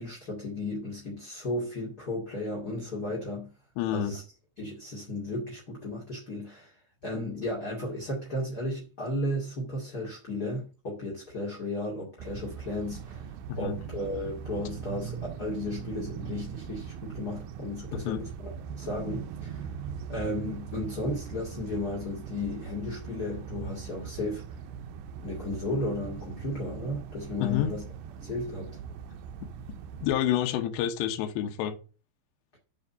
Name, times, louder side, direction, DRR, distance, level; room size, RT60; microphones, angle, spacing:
voice 1, 0.0-3.5 3.9-4.2 4.6-19.7 20.1-24.6 25.2-27.8 28.2-28.8, left 1 dB, 35° left, 1.7 m, -34 dB
voice 2, 3.8-4.1 13.5-13.8 17.9-18.2 27.4-27.7 29.4-29.5 30.0-31.8, left 11 dB, 80° left, 3.1 m, -28 dB
sound 1, 12.2-30.2, right 7 dB, 85° right, 2.1 m, -40 dB
8.5 x 5.3 x 6.7 m
omnidirectional pair, 5.1 m